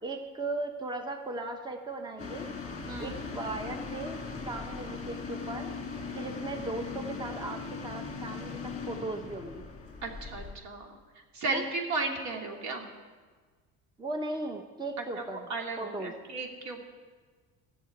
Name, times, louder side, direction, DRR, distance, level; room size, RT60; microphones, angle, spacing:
voice 1, 0.0-2.5 3.0-4.2 4.4-5.7 6.1-9.7 11.5-11.6 14.0-15.5 15.8-16.1, right 2 dB, 15° right, 5 dB, 1.0 m, -37 dB
sound 1, 2.2-10.5, left 4 dB, 25° left, 2.3 m, -39 dB
voice 2, 2.8-3.2 10.0-11.0 11.3-12.9 15.0-15.2 15.5-16.9, right 3 dB, 65° right, 2 dB, 2.7 m, -35 dB
14.0 x 6.9 x 8.9 m, 1.5 s
cardioid pair, 115°, 31 cm